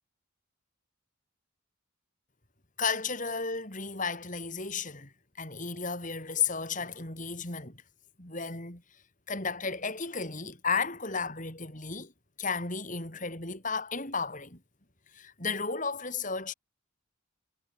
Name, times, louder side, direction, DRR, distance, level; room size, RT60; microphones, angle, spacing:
voice 1, 2.8-5.1 5.4-7.8 8.2-8.8 9.3-12.1 12.4-14.6 15.1-16.5, left 5 dB, 35° left, 4.6 m, -33 dB
head